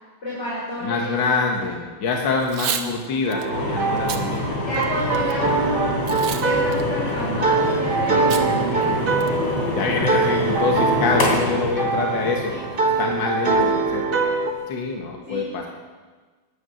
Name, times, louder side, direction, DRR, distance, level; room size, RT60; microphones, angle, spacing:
voice 1, 0.2-1.7 2.7-3.0 4.6-6.0 6.4-9.3 12.5-12.6 15.3-15.4, equal, 30° left, -7 dB, 4.2 m, -30 dB
voice 2, 0.8-4.6 8.5-8.6 9.7-12.6 13.0-14.2 14.7-15.7, left 4 dB, 65° left, 1 dB, 2.1 m, -25 dB
Packing tape duct tape / Tearing, 2.4-2.9 3.3-3.5 4.0-4.2 4.7-5.3 6.1-6.5 6.7-6.8 8.3-8.5 8.8-8.9 9.2-9.5, right 8 dB, 70° right, 1.7 m, -29 dB
sound 1, 3.2-14.5, right 4 dB, 40° right, 0.9 m, -24 dB
sound 2, 3.5-14.6, left 2 dB, 85° left, 3.9 m, -27 dB
12.0 x 11.0 x 7.8 m, 1.3 s
omnidirectional pair, 2.3 m